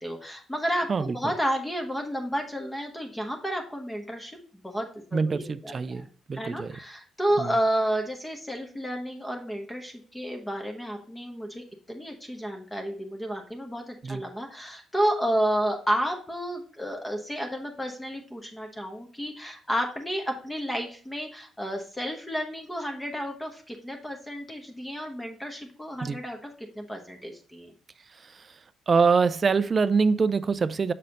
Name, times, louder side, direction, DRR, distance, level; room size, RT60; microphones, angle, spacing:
voice 1, 0.0-4.4 4.6-6.1 6.3-26.5 26.7-27.7, equal, 10° left, 1.0 m, -31 dB
voice 2, 5.1-6.8 7.4-7.5 14.0-14.2 26.0-26.2 28.2-28.5 28.9-30.9, right 5 dB, 40° right, 0.4 m, -25 dB
6.5 x 4.1 x 4.0 m
cardioid pair, 90°, 0 cm